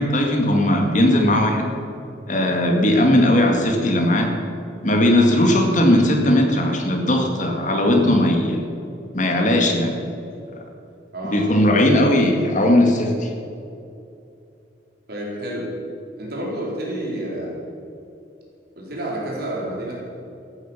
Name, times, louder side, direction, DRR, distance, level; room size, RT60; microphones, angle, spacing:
voice 1, 0.0-1.7 2.3-4.3 4.8-8.6 9.1-10.0 11.2-13.3, left 1 dB, 45° left, 3 dB, 2.3 m, -18 dB
voice 2, 11.1-11.5 15.1-15.7 16.2-17.7 18.8-20.0, right 1 dB, 60° right, -4 dB, 4.4 m, -29 dB
14.5 x 10.5 x 7.4 m, 2.7 s
head